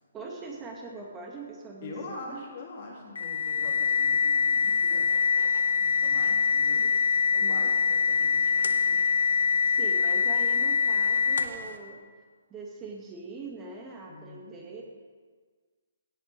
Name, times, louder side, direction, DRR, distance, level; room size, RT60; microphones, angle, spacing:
voice 1, 0.1-2.4 7.4-7.8 9.7-12.0 12.5-14.8, right 3 dB, 15° right, 0 dB, 1.9 m, -42 dB
voice 2, 1.8-5.1 5.8-6.9 7.3-9.0 14.0-14.5, left 3 dB, 45° left, -2 dB, 3.5 m, -43 dB
sound 1, 3.2-11.7, left 6 dB, 70° left, 1.3 m, -24 dB
17.0 x 8.3 x 4.7 m, 1.5 s
figure-of-eight pair, 140°, 0 cm